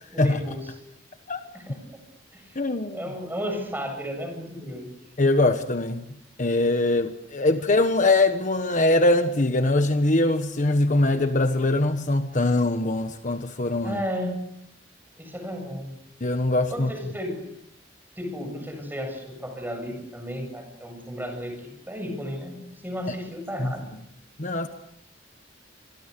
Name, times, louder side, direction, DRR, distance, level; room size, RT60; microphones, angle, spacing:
voice 1, 0.1-0.7 1.5-2.0 2.3-2.6 2.9-4.9 13.8-14.4 15.2-16.0 16.7-17.4 18.2-23.9, equal, 10° right, 7.9 m, -34 dB
voice 2, 2.6-3.0 5.2-6.0 6.4-14.0 16.2-16.9 23.6-23.7 24.4-24.7, left 2 dB, 45° left, 1.3 m, -22 dB
27.0 x 23.0 x 6.9 m
head